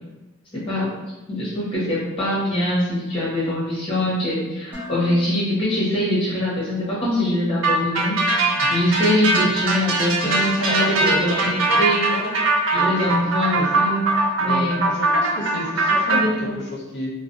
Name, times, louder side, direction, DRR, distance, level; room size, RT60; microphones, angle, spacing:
voice 1, 0.5-0.9 1.3-12.1 12.7-14.8 16.1-16.5, left 1 dB, 25° left, -7 dB, 0.8 m, -23 dB
Dishes pots and pans, 4.7-6.8, left 4 dB, 10° right, 0.5 m, -39 dB
sound 1, 7.6-16.2, right 2 dB, 65° right, 0.4 m, -21 dB
voice 2, 10.2-11.8 12.1-12.5 12.7-13.2 13.6-13.7 14.4-17.1, left 1 dB, 50° left, -2 dB, 0.6 m, -31 dB
2.5 x 2.1 x 2.5 m, 1.1 s
head